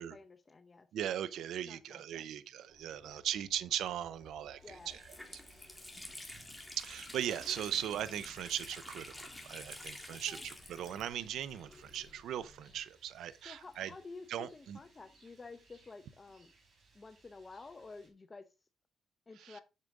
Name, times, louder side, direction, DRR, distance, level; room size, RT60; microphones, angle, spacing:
voice 1, 0.0-0.9 1.7-2.3 3.0-3.2 4.6-5.0 10.1-10.4 13.4-16.5 16.9-18.5 19.3-19.6, left 3 dB, 30° left, 0.7 m, -51 dB
voice 2, 0.9-5.0 6.8-9.1 9.4-13.9 14.3-14.8 19.4-19.6, right 10 dB, 80° right, 0.6 m, -38 dB
sound 1, 2.7-12.8, left 2 dB, 15° right, 4.6 m, -62 dB
Water tap faucet, 4.2-4.3 4.7-12.4 12.7-12.8 13.6-15.1, left 1 dB, 5° left, 2.2 m, -50 dB
Rain, 4.6-18.1, right 3 dB, 50° right, 4.3 m, -66 dB
8.2 x 6.6 x 3.7 m
cardioid pair, 90°, 0 cm